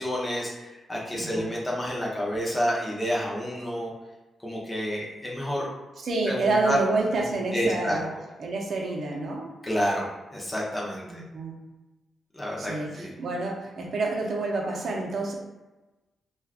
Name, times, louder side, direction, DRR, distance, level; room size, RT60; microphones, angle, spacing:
voice 1, 0.0-3.9 4.4-5.7 6.3-6.8 7.5-8.0 9.6-10.0 10.3-11.2 12.3-12.7 13.0-13.1, equal, 10° left, -4 dB, 0.5 m, -29 dB
voice 2, 1.1-1.5 6.0-8.1 8.4-9.5 11.1-11.6 12.6-15.4, right 3 dB, 50° right, -1 dB, 0.6 m, -28 dB
2.4 x 2.2 x 3.4 m, 1.1 s
wide cardioid pair, 150°, 0 cm